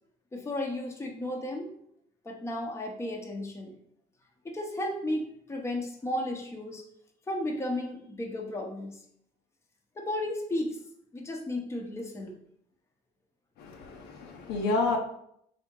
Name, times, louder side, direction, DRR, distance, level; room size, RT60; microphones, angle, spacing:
voice 1, 0.3-1.7 2.2-3.7 4.4-6.8 7.3-9.0 10.0-10.8 11.1-12.4, left 1 dB, 15° left, 1 dB, 0.8 m, -34 dB
voice 2, 13.6-15.0, left 3 dB, 85° left, 2 dB, 0.7 m, -30 dB
3.4 x 2.8 x 4.6 m, 0.70 s
cardioid pair, 110°, 17 cm